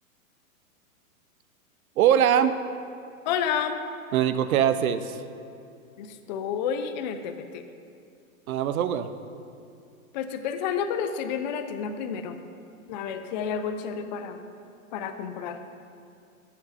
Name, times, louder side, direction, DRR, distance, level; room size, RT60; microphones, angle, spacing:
voice 1, 2.0-2.6 4.1-5.2 8.5-9.1, right 9 dB, 80° right, 12 dB, 0.6 m, -22 dB
voice 2, 3.3-3.8 6.0-7.6 10.1-12.4 12.9-14.4 14.9-15.6, left 7 dB, 35° left, 7 dB, 0.4 m, -30 dB
7.6 x 7.2 x 4.1 m, 2.5 s
hypercardioid pair, 140°, 42 cm